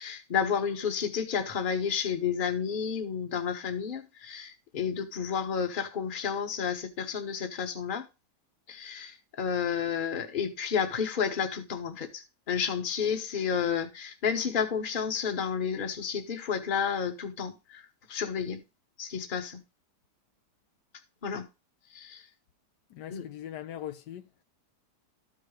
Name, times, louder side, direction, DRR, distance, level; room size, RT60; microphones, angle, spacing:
voice 1, 0.0-8.1 8.7-18.6 19.0-19.6 21.2-21.5 21.9-22.2 23.1-23.2, left 7 dB, 35° left, 1.1 m, -31 dB
voice 2, 22.9-24.4, left 11 dB, 80° left, 1.3 m, -41 dB
13.5 x 4.8 x 3.2 m
omnidirectional pair, 1.8 m